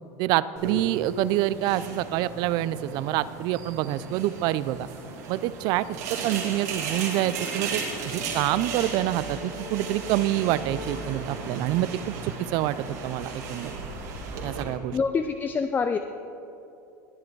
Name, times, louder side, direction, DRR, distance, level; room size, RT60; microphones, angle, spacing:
voice 1, 0.2-4.9 5.3-5.9 6.2-13.7 14.4-15.0, right 14 dB, 60° right, 17 dB, 0.4 m, -27 dB
sound 1, 0.6-14.6, right 4 dB, 85° right, 2.5 m, -35 dB
Brass instrument, 5.9-11.2, left 4 dB, 80° left, 1.9 m, -44 dB
voice 2, 14.9-16.0, left 5 dB, 20° left, 8 dB, 0.5 m, -25 dB
19.5 x 7.6 x 4.7 m, 2.8 s
supercardioid pair, 115°, 8 cm